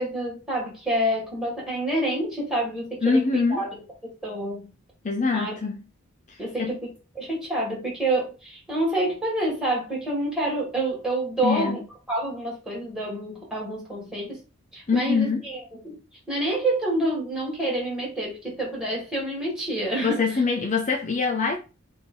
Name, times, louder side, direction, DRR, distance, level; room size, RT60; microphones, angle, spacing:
voice 1, 0.0-3.7 4.0-4.7 5.3-5.5 6.4-6.9 7.2-11.8 12.1-14.4 14.7-16.0 16.3-20.2, right 1 dB, 5° right, 1.9 m, -28 dB
voice 2, 3.0-3.6 5.0-5.8 6.3-6.8 11.4-11.8 14.9-15.4 20.0-21.6, left 4 dB, 35° left, 0.5 m, -24 dB
3.4 x 2.7 x 4.5 m
head